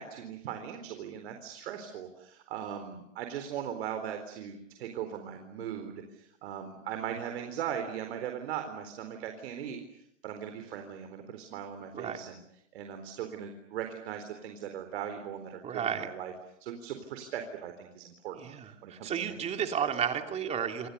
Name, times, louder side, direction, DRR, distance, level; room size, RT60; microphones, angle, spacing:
voice 1, 0.0-9.8 10.2-12.4 12.7-16.3 16.6-19.9, right 9 dB, 55° right, 6 dB, 4.2 m, -39 dB
voice 2, 15.6-16.1 18.3-20.9, right 8 dB, 15° right, 5 dB, 2.8 m, -32 dB
29.0 x 28.0 x 6.9 m, 0.79 s
hypercardioid pair, 145°, 38 cm